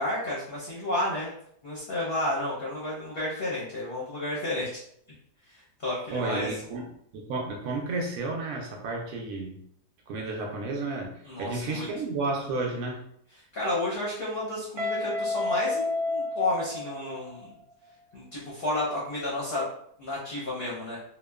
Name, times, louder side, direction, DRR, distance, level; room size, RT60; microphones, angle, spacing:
voice 1, 0.0-1.3 1.6-4.7 5.8-6.5 11.2-11.9 13.5-17.5 18.1-19.6 20.0-21.0, left 1 dB, 55° left, -6 dB, 0.7 m, -31 dB
voice 2, 6.1-9.6 10.1-13.0, right 3 dB, 70° right, 0 dB, 0.9 m, -32 dB
Guitar, 14.8-17.6, left 2 dB, 85° right, 1.2 m, -30 dB
2.8 x 2.2 x 2.2 m, 0.68 s
omnidirectional pair, 1.7 m